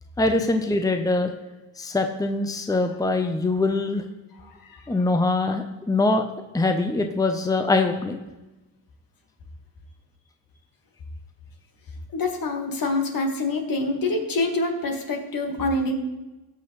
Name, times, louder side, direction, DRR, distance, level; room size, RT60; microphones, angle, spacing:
voice 1, 0.2-1.3 1.8-4.0 4.9-6.2 6.5-8.2, left 2 dB, 10° left, 6 dB, 0.8 m, -23 dB
voice 2, 4.4-4.8 12.1-16.0, left 2 dB, 60° left, 3 dB, 2.0 m, -26 dB
18.0 x 6.2 x 3.2 m, 1.1 s
cardioid pair, 75°, 38 cm